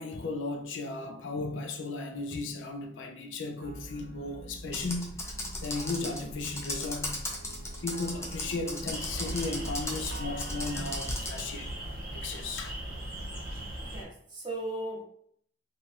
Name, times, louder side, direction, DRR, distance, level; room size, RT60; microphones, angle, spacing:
voice 1, 0.0-5.3 5.6-7.1 7.8-11.7 12.1-12.8, left 3 dB, 80° left, 0.5 m, -35 dB
sound 1, 3.6-11.0, right 2 dB, 70° right, 0.4 m, -46 dB
Computer keyboard, 4.7-11.5, left 2 dB, 15° left, 0.4 m, -37 dB
sound 2, 8.9-14.0, right 1 dB, 50° right, 1.2 m, -38 dB
voice 2, 13.8-15.0, right 1 dB, 25° right, 0.7 m, -37 dB
2.7 x 2.3 x 3.1 m
head